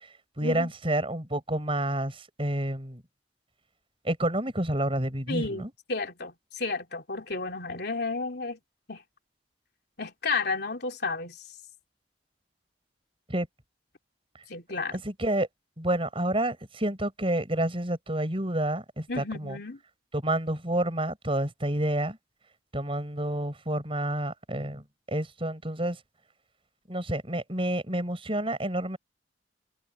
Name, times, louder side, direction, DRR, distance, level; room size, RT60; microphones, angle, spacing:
voice 1, 0.4-3.0 4.0-5.7 13.3-13.5 14.9-15.5 15.8-19.6 20.1-22.2 22.7-26.0 26.9-29.0, right 1 dB, 30° right, 7.7 m, -29 dB
voice 2, 5.3-8.6 8.9-9.0 10.0-11.4 14.5-15.0 19.1-19.8, left 3 dB, 60° left, 3.6 m, -32 dB
head